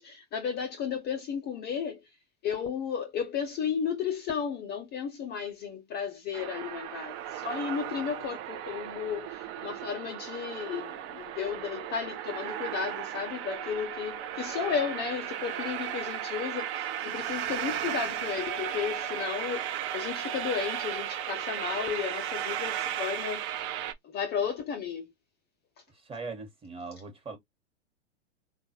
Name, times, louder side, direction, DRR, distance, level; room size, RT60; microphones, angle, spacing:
voice 1, 0.0-2.0 2.4-23.5 24.0-25.1, left 7 dB, 30° left, 0.6 m, -34 dB
sound 1, 6.3-23.9, right 10 dB, 35° right, 0.5 m, -35 dB
voice 2, 25.9-27.4, right 4 dB, 15° right, 1.2 m, -40 dB
3.8 x 2.3 x 2.7 m
hypercardioid pair, 110°, 35 cm